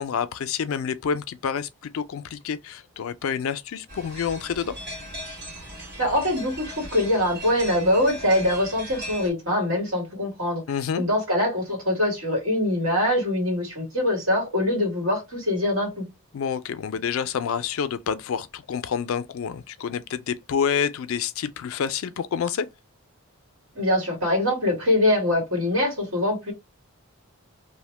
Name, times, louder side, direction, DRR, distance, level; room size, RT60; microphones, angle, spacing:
voice 1, 0.0-4.8 10.7-11.0 16.3-22.7, left 7 dB, 70° left, 0.4 m, -28 dB
sound 1, 3.9-9.3, equal, 45° right, 1.5 m, -38 dB
voice 2, 6.0-10.6 11.0-16.1 23.8-26.5, left 1 dB, 65° right, 1.8 m, -23 dB
2.8 x 2.1 x 3.1 m
head